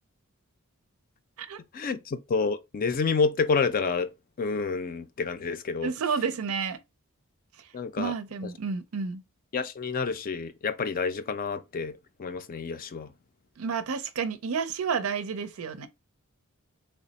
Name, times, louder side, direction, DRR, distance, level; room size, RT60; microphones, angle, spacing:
voice 1, 1.7-4.1 4.4-5.9 7.7-8.1 9.5-13.1, left 4 dB, 40° left, 0.4 m, -29 dB
voice 2, 5.8-6.8 8.0-9.2 13.6-15.9, right 6 dB, 85° right, 0.5 m, -30 dB
3.3 x 2.0 x 4.0 m
head